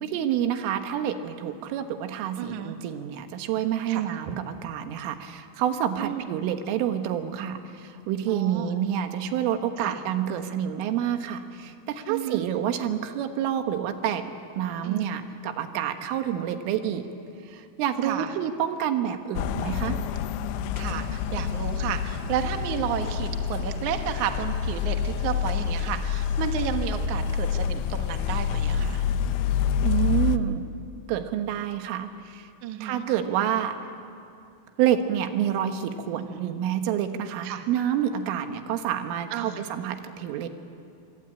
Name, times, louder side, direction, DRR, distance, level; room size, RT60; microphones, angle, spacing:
voice 1, 0.0-14.2 14.6-17.0 17.5-20.0 29.8-30.7 31.1-32.5 32.8-33.8 34.8-40.5, right 10 dB, 80° right, 7 dB, 3.8 m, -28 dB
voice 2, 2.4-2.8 3.9-4.1 6.0-6.3 8.3-8.7 9.8-10.0 12.1-12.4 14.8-15.2 18.0-18.3 20.8-29.1 32.6-33.0 36.1-36.5 37.4-37.7 39.3-39.6, right 9 dB, 65° right, 5 dB, 1.9 m, -32 dB
sound 1, 19.4-30.4, left 8 dB, 80° left, 3.2 m, -27 dB
26.0 x 24.0 x 8.9 m, 2.6 s
omnidirectional pair, 5.7 m